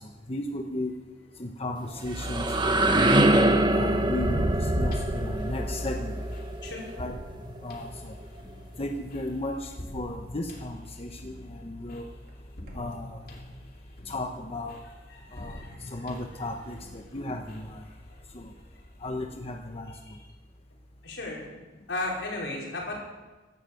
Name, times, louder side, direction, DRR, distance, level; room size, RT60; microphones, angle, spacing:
voice 1, 0.3-0.9 1.4-2.9 3.7-6.2 7.0-7.1 7.6-8.1 8.8-12.0 12.7-13.2 14.1-14.8 15.3-15.6 15.9-17.8 18.3-18.5 19.0-19.9, left 1 dB, 35° left, 3 dB, 1.0 m, -34 dB
sound 1, 1.8-7.6, right 1 dB, 25° right, 1.3 m, -25 dB
sound 2, 4.2-19.8, left 1 dB, 55° left, 2.4 m, -47 dB
sound 3, 4.2-5.8 6.7-6.8 12.7-12.8, right 1 dB, 55° right, 2.4 m, -30 dB
voice 2, 15.1-16.0 20.1-20.2 21.0-21.5 21.9-23.0, left 2 dB, 75° left, -3 dB, 4.9 m, -35 dB
16.0 x 12.5 x 6.7 m, 1.2 s
head